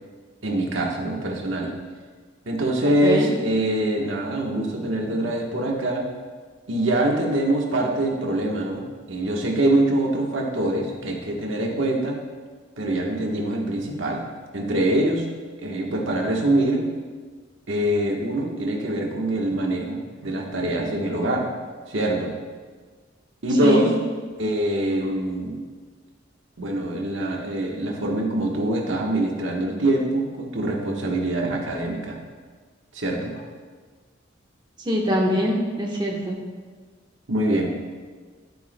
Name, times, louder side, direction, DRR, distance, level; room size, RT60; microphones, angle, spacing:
voice 1, 0.4-1.7 2.5-6.1 6.7-12.2 12.8-14.2 14.5-15.2 15.6-16.8 17.7-21.5 21.9-22.3 23.4-23.9 24.4-25.6 26.6-32.2 32.9-33.4 37.3-38.0, right 1 dB, 80° right, 0 dB, 1.3 m, -24 dB
voice 2, 34.9-36.4, equal, 25° right, -1 dB, 1.1 m, -23 dB
10.5 x 9.2 x 2.2 m, 1.5 s
head